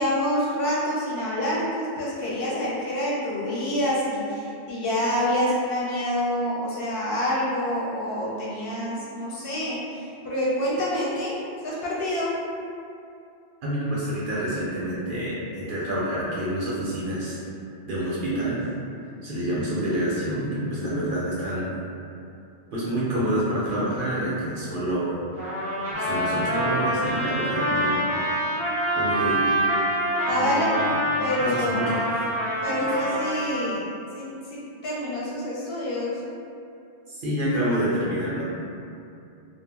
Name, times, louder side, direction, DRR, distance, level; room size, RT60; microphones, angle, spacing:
voice 1, 0.0-11.3 11.6-12.3 30.3-30.7 31.2-32.0 32.6-33.8 34.1-36.1, equal, 65° left, -7 dB, 0.7 m, -27 dB
voice 2, 13.6-17.4 17.8-18.6 19.2-21.7 22.7-25.1 25.9-28.0 28.9-29.4 30.3-30.9 31.4-32.2 32.8-32.9 37.1-38.5, right 1 dB, 60° right, -8 dB, 0.6 m, -27 dB
Trumpet, 25.4-33.7, right 1 dB, 15° right, 0.5 m, -26 dB
2.1 x 2.0 x 3.3 m, 2.6 s
omnidirectional pair, 1.2 m